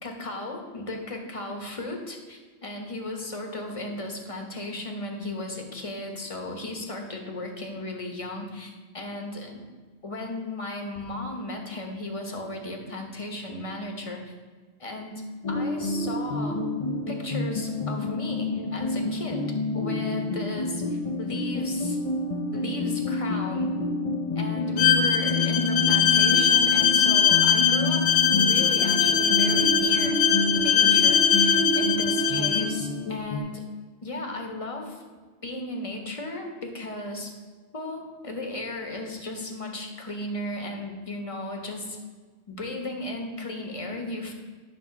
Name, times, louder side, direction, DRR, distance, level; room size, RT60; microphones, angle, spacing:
voice 1, 0.0-9.6 10.0-14.2 14.8-16.7 17.1-22.0 22.5-23.8 24.4-30.2 30.5-33.6 34.0-35.0 35.4-37.3 37.7-42.0 42.5-44.3, left 2 dB, 30° left, 2 dB, 0.9 m, -35 dB
sound 1, 15.4-33.4, left 1 dB, 50° left, 0.4 m, -28 dB
Bowed string instrument, 24.8-32.7, left 9 dB, 80° left, 0.9 m, -21 dB
9.9 x 3.5 x 5.7 m, 1.4 s
omnidirectional pair, 1.3 m